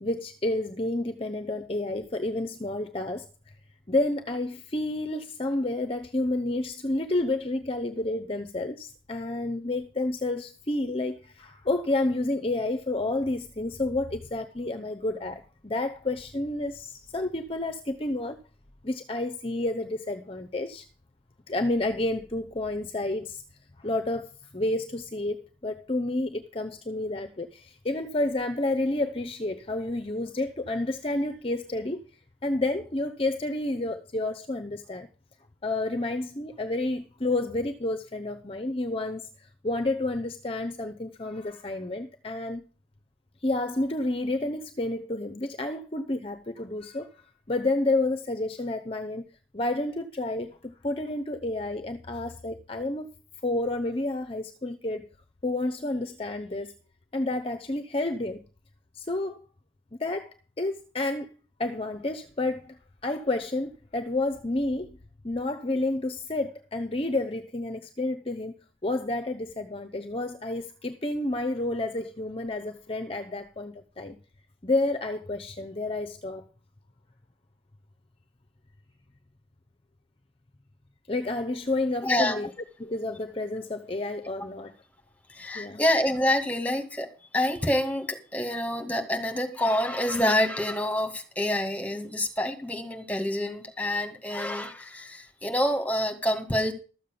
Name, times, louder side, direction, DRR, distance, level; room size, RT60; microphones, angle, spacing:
voice 1, 0.0-3.5 3.9-18.4 18.8-20.9 21.5-23.4 23.8-32.0 32.4-35.1 35.6-42.6 43.4-47.1 47.5-53.1 53.4-55.1 55.4-56.7 57.1-58.4 58.9-59.4 60.0-61.3 61.6-62.8 63.0-64.9 65.2-68.5 68.8-74.2 74.6-76.4 81.1-82.5 82.8-84.7 85.5-85.8, left 2 dB, 30° left, 0.8 m, -30 dB
voice 2, 82.0-82.4 85.3-87.1 87.3-96.7, left 1 dB, 10° left, 2.2 m, -27 dB
13.5 x 7.4 x 6.8 m
head